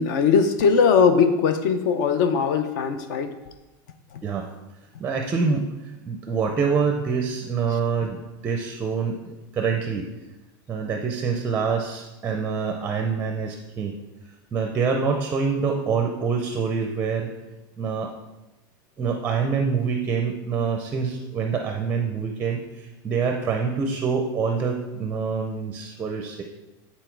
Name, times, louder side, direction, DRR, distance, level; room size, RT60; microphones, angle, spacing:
voice 1, 0.0-3.4 4.1-4.2, left 6 dB, 60° left, 9 dB, 0.6 m, -20 dB
voice 2, 5.0-5.7 6.1-10.1 10.7-13.9 14.5-17.3 17.8-18.1 19.0-26.4, right 5 dB, 15° right, 3 dB, 0.5 m, -26 dB
9.0 x 4.2 x 4.5 m, 1.1 s
supercardioid pair, 165°, 11 cm